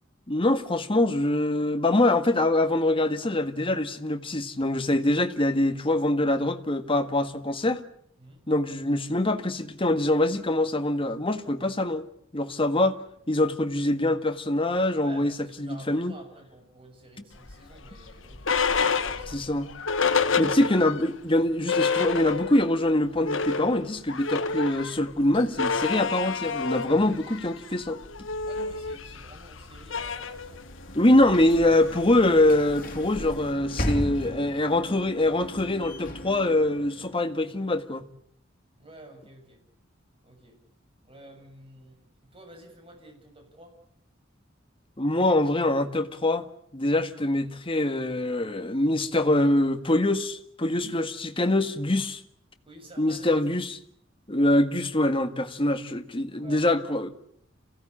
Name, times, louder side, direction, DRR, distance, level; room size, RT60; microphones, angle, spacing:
voice 1, 0.3-7.8 8.5-12.0 12.3-13.0 13.3-15.3 15.6-16.1 19.3-19.7 20.4-28.0 31.0-38.0 45.0-46.5 46.7-51.1 51.4-52.2 53.0-53.8 54.3-57.1, left 1 dB, 25° left, 1.7 m, -24 dB
voice 2, 15.0-19.7 20.1-20.8 28.4-30.7 34.0-35.0 38.8-39.6 40.2-40.6 41.0-43.8 50.7-51.0 52.7-53.4 56.3-56.7, right 1 dB, 30° right, 7.0 m, -49 dB
sound 1, 17.4-21.1 21.4-21.5 21.7-22.8 23.1-33.5, left 5 dB, 70° left, 1.4 m, -29 dB
Sliding door / Slam, 30.4-37.4, equal, 45° left, 3.1 m, -36 dB
27.0 x 17.0 x 10.0 m
head